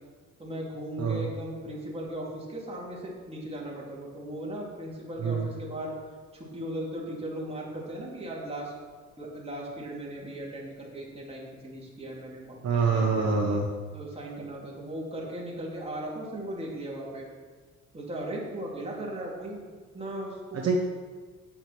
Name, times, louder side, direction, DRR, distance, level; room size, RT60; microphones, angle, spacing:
voice 1, 0.4-5.9 6.3-8.7 9.2-12.6 12.9-13.3 13.9-17.3 17.9-19.6 19.9-20.8, right 1 dB, 20° right, -4 dB, 3.4 m, -37 dB
voice 2, 1.0-1.3 5.2-5.5 12.6-13.7 20.5-20.8, right 4 dB, 60° right, 1 dB, 1.2 m, -26 dB
8.7 x 7.8 x 6.2 m, 1.5 s
cardioid pair, 90°, 30 cm